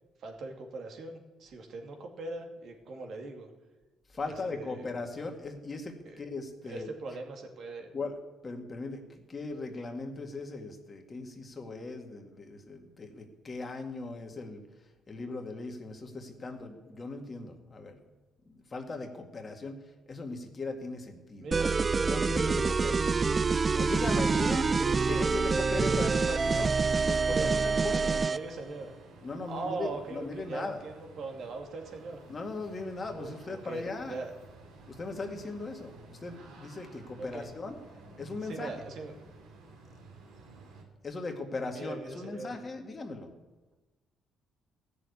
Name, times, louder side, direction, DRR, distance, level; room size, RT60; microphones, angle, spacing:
voice 1, 0.2-3.5 4.2-4.9 6.1-6.2 6.6-7.9 21.4-21.8 24.7-25.3 25.9-26.6 27.2-27.5 28.3-28.9 29.5-32.2 33.1-34.3 37.2-37.5 38.4-39.1 41.7-42.5, right 3 dB, 65° right, 3 dB, 2.3 m, -40 dB
voice 2, 4.1-6.9 7.9-14.6 15.1-18.0 18.5-19.8 20.1-21.5 22.1-23.0 23.7-24.7 25.1-26.7 27.0-28.3 29.2-30.8 32.3-34.2 34.9-37.8 38.2-38.7 41.0-43.3, left 3 dB, 35° left, 3 dB, 2.2 m, -38 dB
sound 1, 21.5-28.4, right 4 dB, 35° right, 0.3 m, -26 dB
sound 2, 25.7-40.8, right 2 dB, 80° right, 2.8 m, -52 dB
15.0 x 6.9 x 8.4 m, 1.2 s
supercardioid pair, 75°, 0 cm